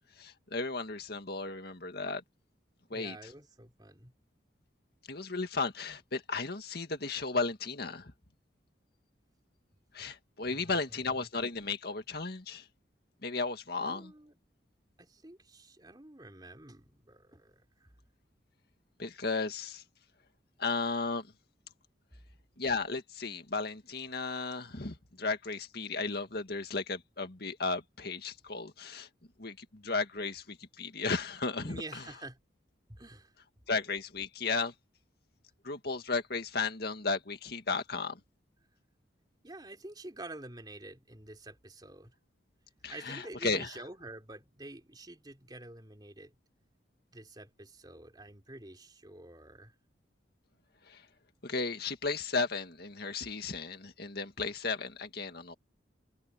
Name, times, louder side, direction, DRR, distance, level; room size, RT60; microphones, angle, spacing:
voice 1, 0.2-2.2 2.9-3.2 5.1-8.1 9.9-12.7 13.2-14.1 19.0-19.8 20.6-21.3 22.6-29.1 29.4-32.0 33.7-34.7 35.6-38.2 42.8-43.7 50.9-51.0 51.4-55.5, left 4 dB, 55° left, 2.0 m, -34 dB
voice 2, 2.9-4.1 10.5-11.2 13.8-14.3 15.0-17.9 31.6-32.4 32.9-33.3 39.4-42.1 42.9-46.3 47.1-49.7, right 2 dB, 20° right, 3.4 m, -48 dB
head